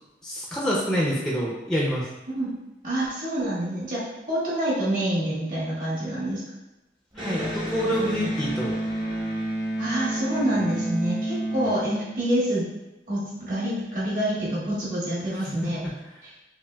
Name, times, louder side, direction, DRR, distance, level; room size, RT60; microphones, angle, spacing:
voice 1, 0.2-2.1 7.1-8.8 15.4-15.9, equal, 5° left, -4 dB, 0.4 m, -27 dB
voice 2, 2.8-6.4 9.8-12.6 13.1-15.8, right 1 dB, 50° right, -8 dB, 1.4 m, -27 dB
Electric guitar, 7.1-12.6, right 1 dB, 25° right, 0.8 m, -30 dB
5.7 x 2.4 x 2.3 m, 1.0 s
head